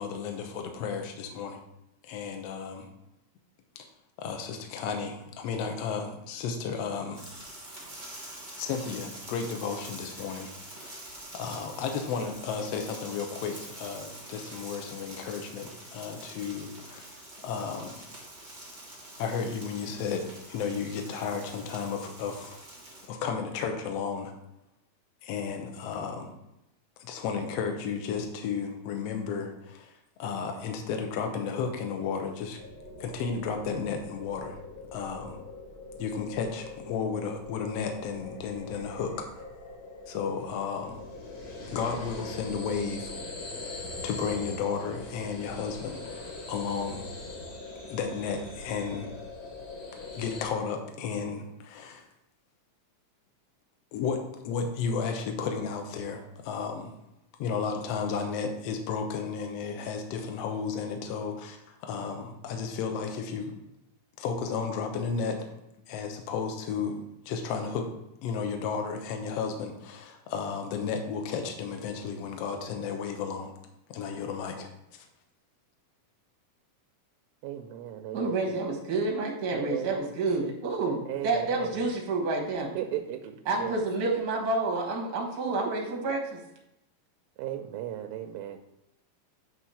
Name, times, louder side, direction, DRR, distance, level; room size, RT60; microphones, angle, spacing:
voice 1, 0.0-1.6 2.0-2.9 4.2-7.2 8.6-11.0 11.3-17.1 17.4-18.0 19.2-22.6 23.1-24.3 25.2-26.3 27.0-29.9 30.2-32.6 33.0-34.6 34.9-35.4 36.0-39.4 40.1-41.0 41.7-43.1 43.6-43.7 44.0-47.1 47.9-49.1 50.1-52.0 53.9-54.2 54.4-56.9 57.4-63.5 64.2-65.5 65.9-67.9 68.2-73.5 73.9-74.7, left 6 dB, 75° left, 4 dB, 1.5 m, -33 dB
sound 1, 7.1-23.1, right 1 dB, 35° right, 0.6 m, -45 dB
sound 2, 32.6-50.5, left 2 dB, 55° left, 2.8 m, -42 dB
voice 2, 77.4-78.3 79.5-80.0 81.1-81.9 82.8-83.8 85.4-85.5 87.4-88.6, right 11 dB, 85° right, 5 dB, 2.3 m, -36 dB
voice 3, 78.1-82.7 83.4-86.4, right 3 dB, 60° right, -1 dB, 1.0 m, -29 dB
8.4 x 3.1 x 5.6 m, 0.88 s
omnidirectional pair, 4.0 m